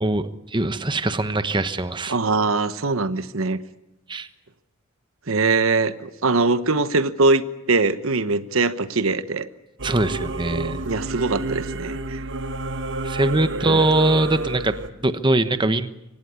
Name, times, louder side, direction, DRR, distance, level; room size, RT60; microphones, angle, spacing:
voice 1, 0.0-2.1 4.1-4.3 9.8-10.8 13.0-15.9, right 2 dB, 25° right, 11 dB, 1.1 m, -22 dB
voice 2, 2.1-3.6 5.3-9.5 10.8-12.2 13.6-13.8, right 3 dB, 85° right, 13 dB, 1.1 m, -22 dB
Singing / Musical instrument, 9.8-14.9, right 2 dB, 60° right, 1.3 m, -29 dB
24.5 x 18.5 x 9.5 m, 0.89 s
head